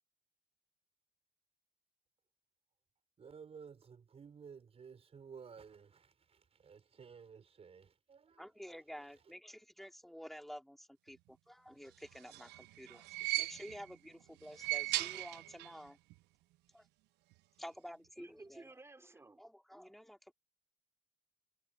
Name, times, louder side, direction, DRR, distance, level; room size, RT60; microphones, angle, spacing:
voice 1, 3.2-9.3, right 6 dB, 35° right, 5.0 m, -55 dB
voice 2, 8.4-12.5 12.8-13.1 13.4-16.0 16.7-16.8 17.6-18.7 19.4-20.2, equal, ahead, 2.7 m, -50 dB
sound 1, 12.0-14.0 14.4-15.9 16.1-16.2 17.3-17.4, right 20 dB, 80° right, 0.4 m, -38 dB
voice 3, 18.2-19.4, right 2 dB, 15° right, 3.6 m, -55 dB
cardioid pair, 110°, 17 cm